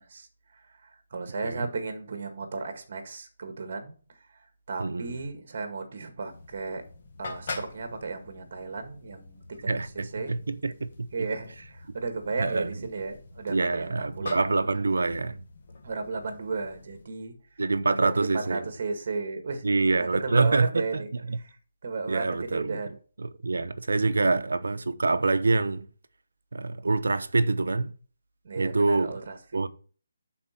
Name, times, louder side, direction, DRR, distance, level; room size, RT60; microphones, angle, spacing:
voice 1, 0.0-3.9 4.3-6.8 7.2-10.3 11.1-14.7 15.8-17.3 17.9-19.7 20.0-21.1 21.4-21.6 21.8-23.0 28.4-29.7, right 4 dB, 40° right, 1.7 m, -35 dB
voice 2, 4.8-5.2 9.7-11.1 12.4-12.7 13.5-15.4 17.6-18.6 19.6-21.4 22.1-22.8 23.2-25.9 26.5-27.9 28.6-29.1 29.5-29.7, right 3 dB, 85° right, 0.8 m, -26 dB
sound 1, 6.3-17.0, left 3 dB, 40° left, 1.5 m, -45 dB
11.0 x 4.5 x 4.4 m
hypercardioid pair, 175°, 0 cm